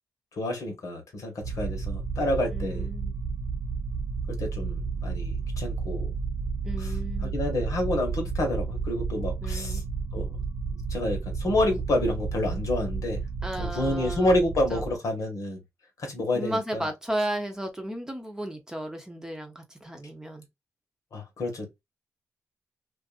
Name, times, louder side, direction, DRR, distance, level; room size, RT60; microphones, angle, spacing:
voice 1, 0.3-2.9 4.3-6.1 6.8-6.9 7.2-9.8 10.1-10.3 10.7-13.2 13.6-15.6 16.0-16.9 21.1-21.8, left 1 dB, 70° left, 1.3 m, -29 dB
sound 1, 1.4-15.0, right 4 dB, 45° right, 0.6 m, -32 dB
voice 2, 2.5-3.2 6.6-7.4 9.4-9.9 13.4-14.4 14.7-14.8 16.3-20.5, right 1 dB, 10° right, 0.8 m, -34 dB
2.6 x 2.5 x 2.3 m
cardioid pair, 80°, 6 cm